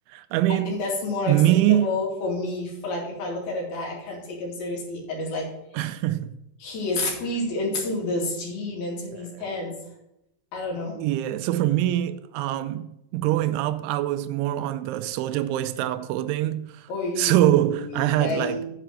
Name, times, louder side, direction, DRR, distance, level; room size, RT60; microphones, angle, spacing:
voice 1, 0.1-0.7 1.3-2.0 5.7-6.3 9.1-9.5 11.0-16.9 17.2-18.6, right 13 dB, 85° right, 2.8 m, -24 dB
voice 2, 0.7-5.5 6.6-9.8 10.5-11.0 16.9-17.5 18.2-18.7, left 2 dB, 55° left, 4.0 m, -29 dB
7.9 x 5.9 x 7.4 m
omnidirectional pair, 5.6 m